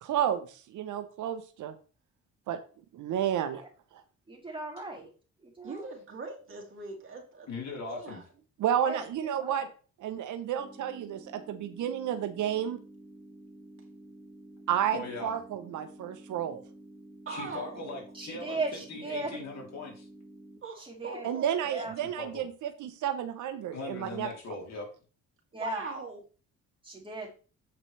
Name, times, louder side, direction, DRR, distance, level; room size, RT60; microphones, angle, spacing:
voice 1, 0.0-1.7 2.5-2.6 2.9-3.6 3.9-4.0 8.6-9.7 10.0-12.8 14.7-16.6 21.2-24.3, right 10 dB, 80° right, 9 dB, 0.9 m, -31 dB
voice 2, 4.3-5.1 5.4-5.8 8.8-9.0 9.4-9.6 18.1-19.4 20.8-21.3 21.7-21.9 25.5-25.8 26.8-27.3, right 3 dB, 15° right, -2 dB, 3.5 m, -37 dB
voice 3, 5.6-7.5 7.9-8.2 17.2-18.0 20.6-21.8 25.5-26.2, right 4 dB, 45° right, -1 dB, 3.0 m, -41 dB
voice 4, 7.5-8.2 14.9-15.3 17.3-20.1 22.0-22.4 23.6-24.9, left 3 dB, 60° left, 0 dB, 3.3 m, -40 dB
sound 1, 10.6-20.6, right 1 dB, ahead, 3.3 m, -51 dB
8.1 x 5.9 x 3.3 m, 0.36 s
cardioid pair, 90°, 30 cm